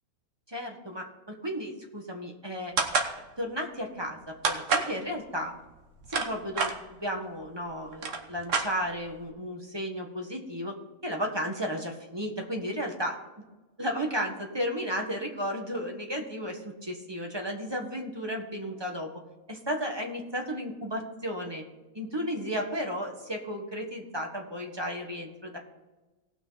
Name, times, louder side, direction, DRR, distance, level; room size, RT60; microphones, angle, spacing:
voice 1, 0.5-2.7 3.4-5.5 6.1-6.7 7.0-10.7 11.0-13.2 13.8-19.1 19.5-21.6 21.9-25.6, equal, 20° right, 1 dB, 1.4 m, -34 dB
sound 1, 2.8-3.1 4.4-4.9 5.8-6.7 7.6-7.7 7.9-9.1, right 4 dB, 60° right, 1.5 m, -27 dB
18.5 x 6.2 x 4.1 m, 1.2 s
omnidirectional pair, 1.5 m